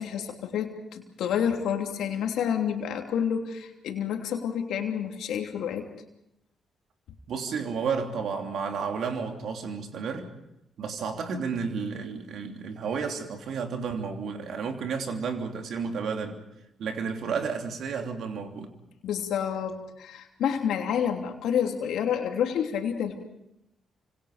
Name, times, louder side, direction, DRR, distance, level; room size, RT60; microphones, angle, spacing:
voice 1, 0.0-5.9 19.0-23.2, left 8 dB, 70° left, 3 dB, 3.1 m, -29 dB
voice 2, 7.3-10.3 10.8-16.4 16.8-18.7, right 5 dB, 65° right, 4 dB, 3.1 m, -32 dB
29.5 x 26.0 x 5.1 m, 0.86 s
hypercardioid pair, 45°, 0 cm